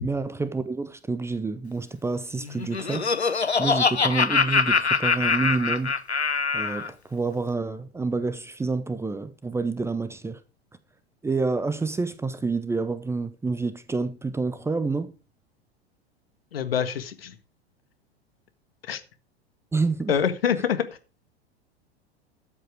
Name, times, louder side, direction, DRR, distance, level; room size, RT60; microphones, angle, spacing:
voice 1, 0.0-3.1 3.6-5.9 6.5-10.4 11.2-15.1 19.7-20.1, right 3 dB, 10° right, 0.8 m, -28 dB
Laughter, 2.4-6.9, left 5 dB, 90° left, 0.8 m, -24 dB
voice 2, 16.5-17.4 18.9-19.0 20.1-20.8, left 8 dB, 65° left, 1.6 m, -25 dB
12.5 x 7.9 x 4.7 m
figure-of-eight pair, 90°, 32 cm